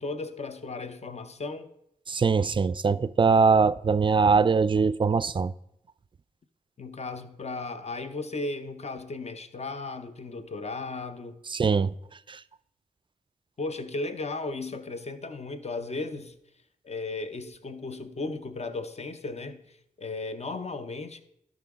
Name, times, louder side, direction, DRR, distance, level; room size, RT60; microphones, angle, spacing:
voice 1, 0.0-1.7 6.8-11.4 13.6-16.4 16.8-21.2, left 3 dB, 45° left, 0.7 m, -35 dB
voice 2, 2.1-5.5 11.5-11.9, right 5 dB, 35° right, 0.3 m, -22 dB
12.0 x 4.9 x 3.6 m
cardioid pair, 45°, 15 cm